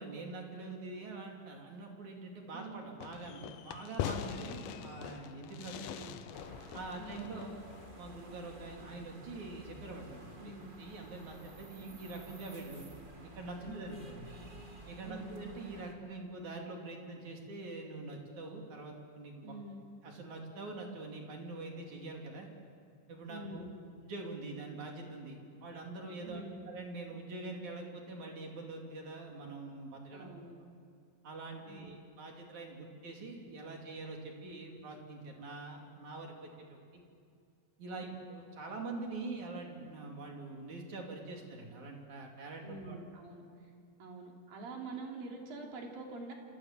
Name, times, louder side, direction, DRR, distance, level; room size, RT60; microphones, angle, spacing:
voice 1, 0.0-6.1 6.7-7.5 8.0-12.9 13.4-14.3 14.9-19.5 20.0-22.5 23.1-23.7 24.0-30.3 31.2-36.8 37.8-43.0, right 3 dB, 55° right, 1 dB, 4.1 m, -44 dB
voice 2, 2.5-2.9 4.4-4.7 5.7-6.2 7.0-7.4 10.4-10.7 13.6-14.1 15.0-15.3 19.4-19.9 23.3-23.8 26.2-26.6 30.1-30.5 31.6-32.0 37.9-38.2 42.6-43.5 44.0-46.3, right 2 dB, 85° right, 0 dB, 5.1 m, -46 dB
Fireworks, 3.0-8.2, left 10 dB, 75° left, 2.4 m, -42 dB
sound 1, 6.3-15.9, right 1 dB, 15° right, 1.9 m, -52 dB
27.5 x 26.5 x 7.5 m, 2.3 s
omnidirectional pair, 4.0 m